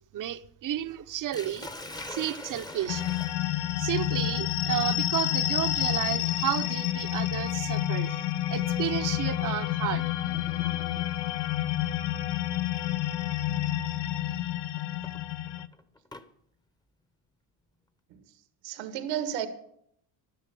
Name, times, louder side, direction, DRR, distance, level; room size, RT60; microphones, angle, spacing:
voice 1, 0.1-1.7 2.1-3.2 3.8-10.0, right 12 dB, 45° right, 0.8 m, -32 dB
Sink (filling or washing), 1.3-11.3 12.4-12.7 13.2-13.3 14.8-16.3, left 2 dB, 10° left, 0.8 m, -46 dB
sound 1, 2.9-15.7, left 13 dB, 85° left, 0.8 m, -29 dB
voice 2, 18.6-19.5, right 10 dB, 90° right, 1.7 m, -32 dB
12.5 x 10.5 x 7.0 m
cardioid pair, 125°, 43 cm